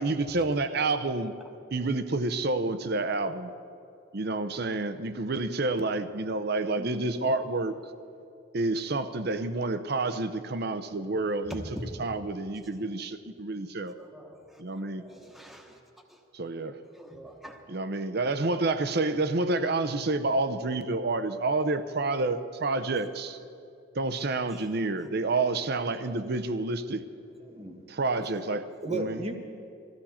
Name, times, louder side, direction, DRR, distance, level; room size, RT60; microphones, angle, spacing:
voice 1, 0.0-1.3 1.7-3.5 4.1-7.8 8.5-11.6 12.0-13.9 14.6-15.0 16.3-16.8 17.7-23.4 23.9-27.0 27.9-29.2, right 3 dB, 55° right, 0.7 m, -29 dB
voice 2, 6.8-7.4 27.5-27.8 28.8-29.3, right 1 dB, 30° right, 1.4 m, -35 dB
voice 3, 14.0-15.8 16.1-16.2 16.9-17.6 24.5-24.7, right 1 dB, ahead, 1.2 m, -46 dB
20.5 x 15.0 x 4.3 m
head